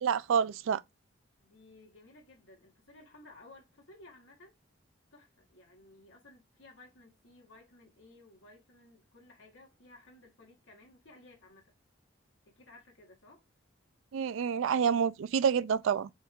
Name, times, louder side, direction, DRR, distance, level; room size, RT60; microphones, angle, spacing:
voice 1, 0.0-0.8 14.1-16.1, right 7 dB, 80° right, 0.3 m, -28 dB
voice 2, 1.4-4.5 5.1-11.7 12.5-13.4, left 2 dB, 70° left, 1.8 m, -57 dB
4.3 x 3.4 x 3.6 m
head